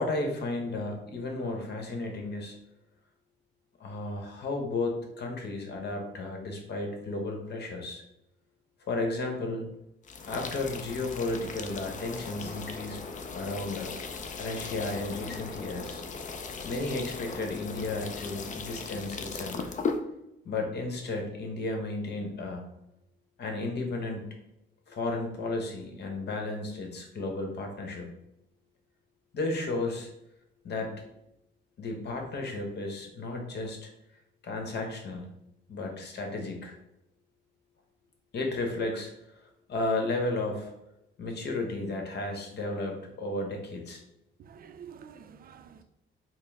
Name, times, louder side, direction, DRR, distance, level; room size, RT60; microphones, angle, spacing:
voice 1, 0.0-2.6 3.8-8.0 8.8-9.7 10.3-13.0 13.3-13.9 14.4-16.0 16.6-20.1 20.4-22.6 23.4-24.4 24.9-28.1 29.3-30.1 30.6-31.1 31.8-33.9 34.4-35.3 35.7-36.8 38.3-39.1 39.3-40.7 41.2-44.0, left 2 dB, 55° left, 0.9 m, -33 dB
sound 1, 10.0-20.0, left 5 dB, 40° left, 0.5 m, -38 dB
voice 2, 44.4-45.8, right 7 dB, 50° right, 0.4 m, -49 dB
4.3 x 2.0 x 3.5 m
cardioid pair, 90°, 20 cm